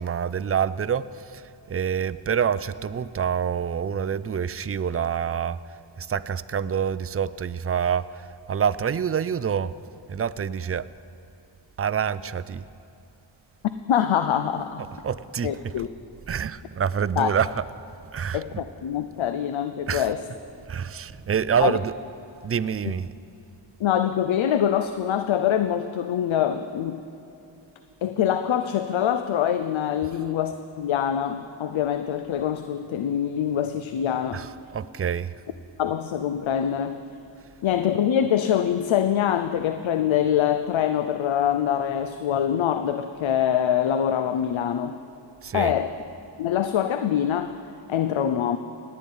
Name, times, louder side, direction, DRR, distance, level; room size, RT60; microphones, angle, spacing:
voice 1, 0.0-5.6 6.0-9.7 10.1-10.9 11.8-12.6 14.8-15.9 16.3-17.7 18.1-18.6 19.9-20.1 20.7-22.0 22.4-23.1 34.3-35.3 45.4-45.7, right 7 dB, 30° right, 16 dB, 0.4 m, -27 dB
voice 2, 13.9-14.8 15.4-15.9 17.2-17.3 18.3-20.2 21.6-21.8 22.8-22.9 23.8-27.0 28.0-34.4 35.8-37.0 37.6-45.0 45.5-46.0 46.4-47.5 47.9-48.6, left 9 dB, 80° left, 9 dB, 0.6 m, -24 dB
18.0 x 9.7 x 5.5 m, 2.9 s
cardioid pair, 55°, 46 cm